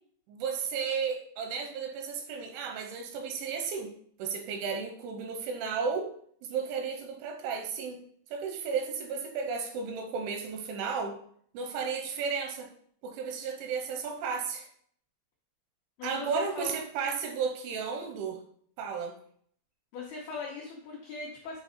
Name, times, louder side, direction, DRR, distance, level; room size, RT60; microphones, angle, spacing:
voice 1, 0.3-3.9 4.2-6.1 6.4-8.0 8.3-11.1 11.5-12.7 13.0-14.7 16.0-18.4 18.8-19.2, right 5 dB, 85° right, 5 dB, 2.9 m, -33 dB
voice 2, 16.0-16.7 19.9-21.6, left 4 dB, 80° left, -3 dB, 2.2 m, -39 dB
9.0 x 3.4 x 5.0 m, 0.62 s
omnidirectional pair, 5.8 m